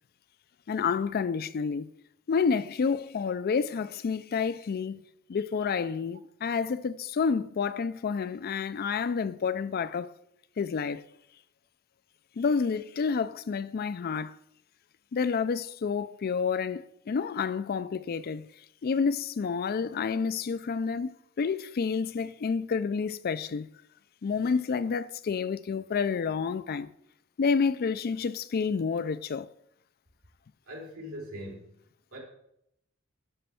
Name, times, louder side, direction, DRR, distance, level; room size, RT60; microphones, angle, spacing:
voice 1, 0.7-1.9 2.3-5.0 5.3-10.1 10.6-11.0 12.4-14.4 15.1-18.5 18.8-23.7 24.2-26.9 27.4-29.5, left 5 dB, 45° left, 0.4 m, -29 dB
voice 2, 30.7-31.7 32.1-32.2, equal, 80° right, 3.6 m, -41 dB
11.0 x 5.2 x 5.7 m
head